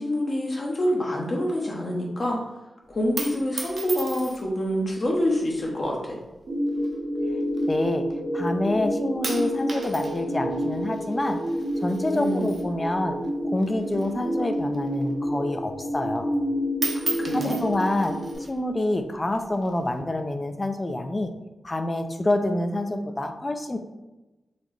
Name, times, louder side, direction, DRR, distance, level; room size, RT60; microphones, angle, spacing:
voice 1, 0.0-2.4 2.9-6.2 12.1-12.5 17.2-17.6, equal, 50° left, -2 dB, 0.8 m, -26 dB
sound 1, 2.9-4.6 5.5-5.9 6.7-8.1 8.5-8.9 9.2-13.3 13.6-15.3 15.6-15.7 16.1-16.5 16.7-18.5 19.3-19.9, right 3 dB, 55° right, 0.7 m, -36 dB
sound 2, 6.5-18.3, equal, 90° right, 0.9 m, -29 dB
voice 2, 7.7-8.1 8.3-11.4 11.8-13.2 13.4-16.3 17.3-18.2 18.5-21.3 21.6-23.8, left 1 dB, 30° left, 7 dB, 0.4 m, -27 dB
4.1 x 3.0 x 3.2 m, 1.1 s
wide cardioid pair, 90°, 0 cm